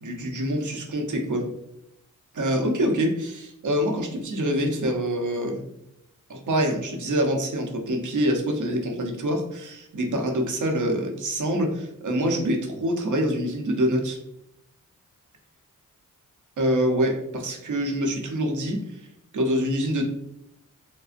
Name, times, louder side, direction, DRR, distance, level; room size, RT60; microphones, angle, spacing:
voice 1, 0.0-1.5 2.3-5.6 6.3-14.2 16.6-19.0 19.3-20.0, equal, 65° right, 2 dB, 0.8 m, -25 dB
5.0 x 2.1 x 2.5 m, 0.82 s
cardioid pair, 65°, 33 cm